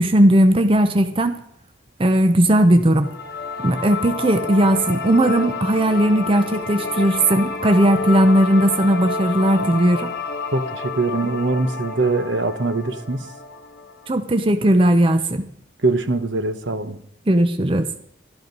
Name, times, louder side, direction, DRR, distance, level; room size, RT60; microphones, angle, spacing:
voice 1, 0.0-1.4 2.0-3.1 3.6-10.1 14.1-15.5 17.3-17.9, right 1 dB, 25° right, 0.6 m, -17 dB
sound 1, 3.0-14.1, left 3 dB, 50° left, 1.3 m, -29 dB
voice 2, 10.5-13.2 15.8-17.0, right 3 dB, 70° right, 1.0 m, -22 dB
12.0 x 12.0 x 5.4 m
head